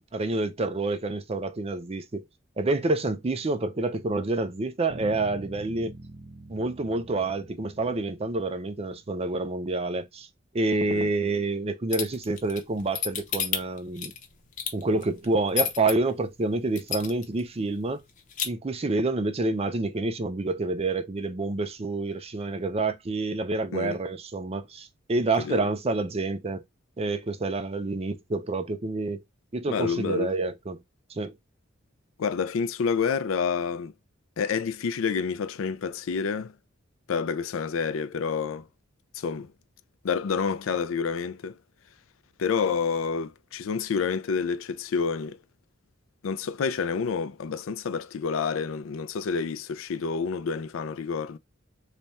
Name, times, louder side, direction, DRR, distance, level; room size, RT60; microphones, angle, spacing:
voice 1, 0.0-2.2 2.6-5.9 6.5-10.3 10.5-14.1 14.7-18.0 18.4-26.6 27.0-29.2 29.5-30.8 31.1-31.3, right 2 dB, 30° right, 0.5 m, -28 dB
Bass guitar, 4.9-9.3, right 2 dB, 55° right, 0.9 m, -45 dB
sound 1, 11.9-15.9 16.4-16.5 16.8-17.4 17.7-17.8 18.1-18.5, left 8 dB, 40° left, 0.8 m, -30 dB
voice 2, 29.7-30.3 32.2-33.9 34.4-36.5 37.1-38.7 39.1-39.5 40.0-41.6 42.4-45.4 46.2-51.4, left 5 dB, 85° left, 0.4 m, -28 dB
3.3 x 2.2 x 4.1 m
head